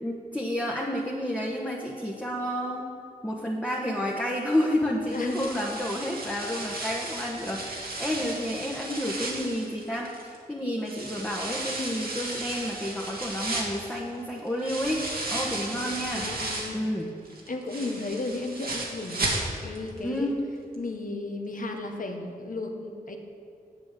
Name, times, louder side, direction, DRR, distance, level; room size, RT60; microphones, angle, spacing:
voice 1, 0.0-2.9 3.2-10.1 10.5-16.3 16.7-17.1 20.0-20.4, equal, 10° left, -3 dB, 1.2 m, -30 dB
voice 2, 5.1-5.8 15.7-16.9 17.5-19.3 19.6-20.3 20.8-23.2, left 2 dB, 60° left, 3 dB, 1.3 m, -34 dB
sound 1, 5.1-10.4 10.8-16.8 17.2-19.9 20.2-20.3 20.7-20.8, right 2 dB, 70° right, 1.7 m, -34 dB
7.8 x 7.8 x 6.6 m, 2.4 s
cardioid pair, 50°, 16 cm